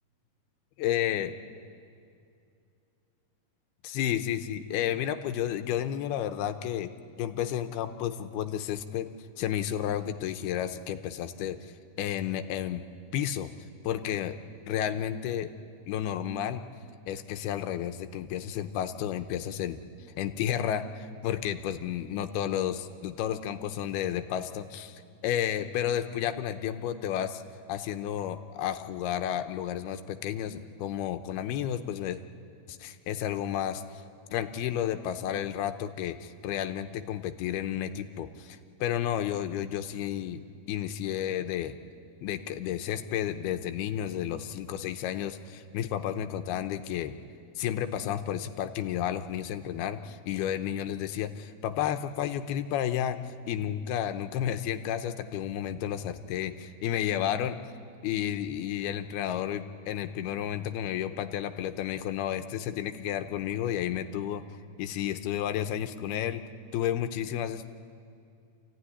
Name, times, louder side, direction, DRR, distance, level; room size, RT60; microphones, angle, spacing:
voice 1, 0.8-1.3 3.8-6.9 7.2-9.1 9.4-11.6 12.0-12.8 13.1-13.5 13.8-14.4 14.7-15.5 15.9-16.6 17.1-19.8 20.2-27.4 27.7-32.2 32.7-33.8 34.3-40.4 40.7-41.8 42.2-47.2 47.6-57.6 58.0-64.4 64.8-66.4 66.7-67.7, left 10 dB, 90° left, 8 dB, 2.9 m, -32 dB
28.0 x 15.5 x 9.9 m, 2.4 s
omnidirectional pair, 4.5 m